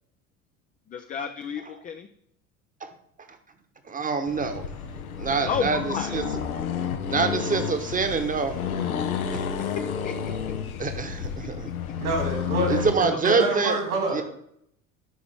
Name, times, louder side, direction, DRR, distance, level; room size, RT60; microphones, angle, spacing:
voice 1, 0.9-2.1 5.5-6.2 9.6-10.1 13.1-13.4, left 7 dB, 20° left, 6 dB, 0.5 m, -32 dB
voice 2, 3.9-4.7 5.2-6.2 7.1-8.6 9.3-9.5 10.8-11.7 12.7-13.8 14.1-14.2, right 4 dB, 20° right, 7 dB, 1.1 m, -26 dB
Accelerating revving vroom, 4.3-13.0, left 7 dB, 80° left, 0.8 m, -31 dB
voice 3, 12.0-14.2, right 2 dB, 75° right, 0 dB, 3.4 m, -27 dB
12.5 x 4.9 x 3.5 m, 0.71 s
figure-of-eight pair, 70°, 42 cm